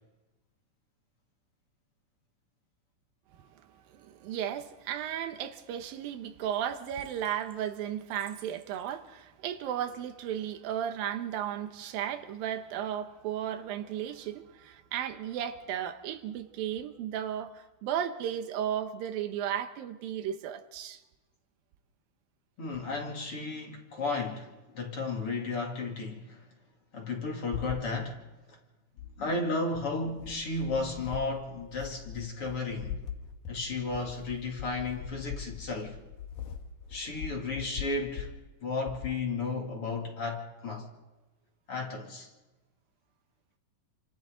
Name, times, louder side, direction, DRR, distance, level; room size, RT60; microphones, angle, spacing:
voice 1, 3.7-21.0, right 10 dB, 85° right, 2.8 m, -35 dB
voice 2, 22.6-26.4 26.9-28.2 28.5-28.6 29.2-33.0 33.5-36.0 36.9-38.3 38.6-40.9 41.7-42.3, left 3 dB, 40° left, 3.3 m, -34 dB
sound 1, 27.5-27.9 29.0-29.3 29.7-38.4 38.9-39.2, left 8 dB, 75° left, 3.2 m, -41 dB
29.0 x 25.5 x 3.9 m
omnidirectional pair, 4.0 m